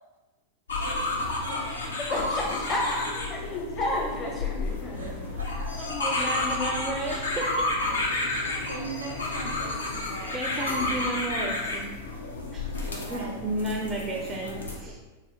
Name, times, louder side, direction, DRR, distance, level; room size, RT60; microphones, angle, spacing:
sound 1, 0.7-14.8, left 2 dB, 70° left, 0.5 m, -31 dB
voice 1, 0.8-1.5 1.7-1.8 5.0-5.1 5.4-5.7 8.7-11.1 12.8-14.0, right 2 dB, 80° right, 0 dB, 0.6 m, -42 dB
voice 2, 2.0-5.1, left 1 dB, 30° left, -1 dB, 0.7 m, -31 dB
sound 2, 4.5-5.9 6.2-9.9, left 1 dB, 90° left, 1.3 m, -48 dB
sound 3, 4.6-12.1, left 4 dB, 55° left, 1.2 m, -44 dB
voice 3, 5.9-7.6 10.3-11.9 12.5-12.7 13.1-15.0, right 1 dB, 15° right, -1 dB, 0.4 m, -32 dB
3.2 x 2.2 x 2.9 m, 1.2 s
figure-of-eight pair, 90°, 0 cm